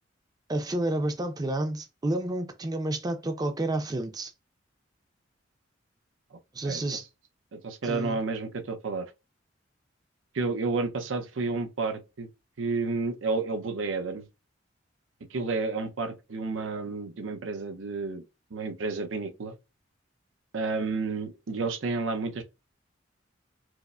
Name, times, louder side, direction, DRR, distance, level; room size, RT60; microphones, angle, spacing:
voice 1, 0.5-4.3 6.5-7.0 7.8-8.2, right 1 dB, 20° right, 0.5 m, -30 dB
voice 2, 6.6-7.0 7.5-9.1 10.3-12.3 12.6-14.3 15.3-18.2 18.5-19.6 20.5-22.4, right 3 dB, 80° right, 0.6 m, -31 dB
4.7 x 2.0 x 2.3 m
head